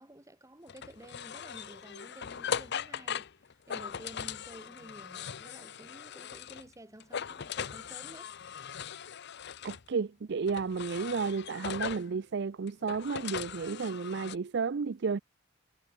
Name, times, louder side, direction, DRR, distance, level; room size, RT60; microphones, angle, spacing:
voice 1, 0.0-3.3 3.7-8.3, right 1 dB, 15° right, 5.0 m, -51 dB
sound 1, 0.7-6.7 7.0-9.9 10.5-12.1 12.7-14.4, left 7 dB, 55° left, 0.6 m, -39 dB
voice 2, 9.6-15.2, right 5 dB, 55° right, 0.5 m, -32 dB
head